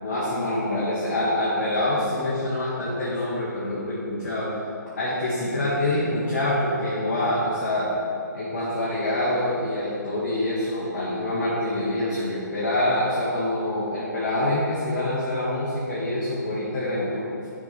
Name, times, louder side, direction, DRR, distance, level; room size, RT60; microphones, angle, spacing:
voice 1, 0.0-4.5 5.0-7.9 8.3-17.5, left 1 dB, 40° left, -7 dB, 1.6 m, -26 dB
11.0 x 4.4 x 4.2 m, 2.6 s
figure-of-eight pair, 135°, 10 cm